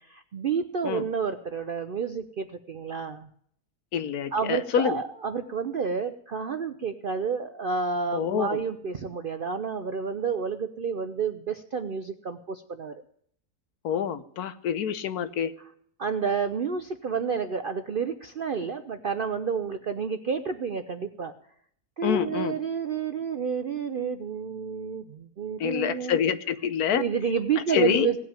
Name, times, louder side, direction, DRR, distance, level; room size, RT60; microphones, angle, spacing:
voice 1, 0.0-3.3 4.3-13.0 16.0-21.3 22.0-26.2 26.9-28.2, right 6 dB, 60° right, 8 dB, 0.5 m, -30 dB
voice 2, 3.9-5.0 8.1-8.6 13.8-15.5 22.0-22.5 25.6-27.0 27.7-28.1, left 8 dB, 75° left, 12 dB, 1.3 m, -26 dB
17.5 x 5.9 x 8.9 m, 0.66 s
omnidirectional pair, 1.6 m